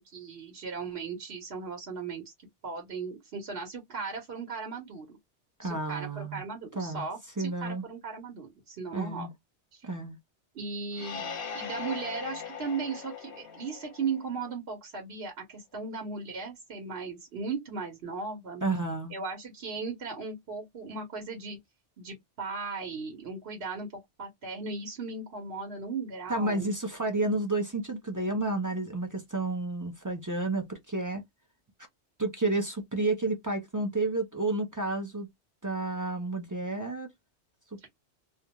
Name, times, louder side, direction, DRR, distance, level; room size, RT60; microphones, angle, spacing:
voice 1, 0.1-2.3 2.6-5.2 5.6-9.3 9.7-9.8 10.5-11.3 11.5-18.6 19.1-21.6 22.0-23.9 24.2-26.8, right 4 dB, 60° right, 1.1 m, -37 dB
voice 2, 5.6-6.4 6.8-7.1 7.4-7.8 8.9-9.3 9.8-10.2 18.6-19.1 26.3-31.2 32.2-35.3 35.6-37.1, right 2 dB, 25° right, 0.4 m, -31 dB
sound 1, 10.9-14.5, left 6 dB, 60° left, 0.7 m, -40 dB
2.4 x 2.2 x 2.8 m
omnidirectional pair, 1.2 m